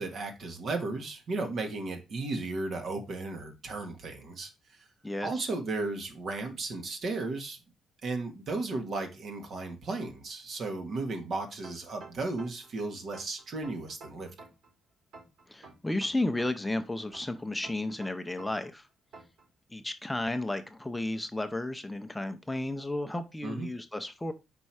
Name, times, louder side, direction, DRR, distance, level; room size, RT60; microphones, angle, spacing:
voice 1, 0.0-4.5 5.2-7.6 8.0-14.3 23.4-23.7, right 3 dB, 60° right, 1.8 m, -35 dB
voice 2, 5.0-5.5 15.5-18.9 19.7-24.3, left 2 dB, 10° left, 0.6 m, -33 dB
sound 1, 11.6-12.7 13.1-14.7 15.1-16.7 17.1-18.7 19.1-19.4, right 4 dB, 80° right, 4.6 m, -50 dB
5.3 x 4.5 x 4.8 m
cardioid pair, 90°, 0 cm